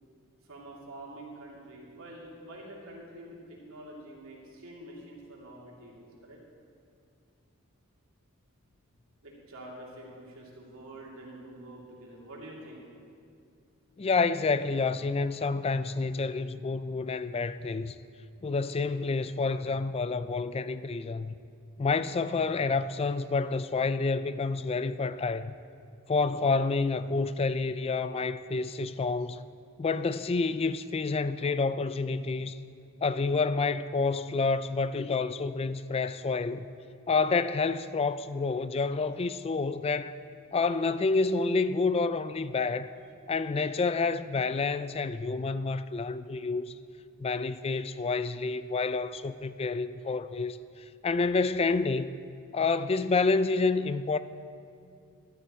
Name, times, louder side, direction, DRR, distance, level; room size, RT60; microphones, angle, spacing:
voice 1, 0.4-6.4 9.2-12.8, right 1 dB, 65° right, 2.7 m, -46 dB
voice 2, 14.0-18.0 18.4-21.3 21.8-25.5 26.1-29.4 29.8-32.6 33.0-36.7 37.1-40.2 40.5-42.9 43.3-46.7 47.2-52.1 52.5-54.2, left 4 dB, 25° left, 0.3 m, -28 dB
13.5 x 12.0 x 4.4 m
head